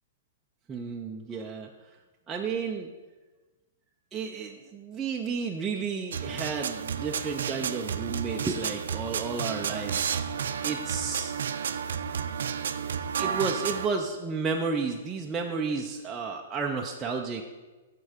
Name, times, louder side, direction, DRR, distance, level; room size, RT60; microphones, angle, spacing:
voice 1, 0.7-1.7 2.3-2.9 4.1-10.3 10.6-11.3 13.2-17.4, right 5 dB, 10° right, 0 dB, 0.4 m, -32 dB
sound 1, 6.1-13.9, right 7 dB, 75° right, 0.5 m, -31 dB
13.5 x 4.5 x 5.0 m, 1.2 s
hypercardioid pair, 170°, 0 cm